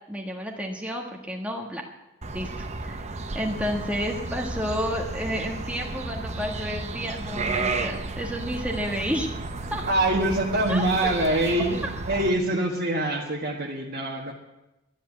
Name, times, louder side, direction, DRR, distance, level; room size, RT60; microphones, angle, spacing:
voice 1, 0.1-1.8 2.3-3.0 3.3-9.3 9.7-9.8 10.7-11.1 11.8-11.9, equal, 5° right, 0 dB, 1.4 m, -31 dB
sound 1, 2.2-12.3, right 3 dB, 35° right, 0.9 m, -33 dB
voice 2, 9.9-14.3, right 1 dB, 50° right, -3 dB, 1.5 m, -24 dB
11.0 x 10.0 x 9.7 m, 0.98 s
head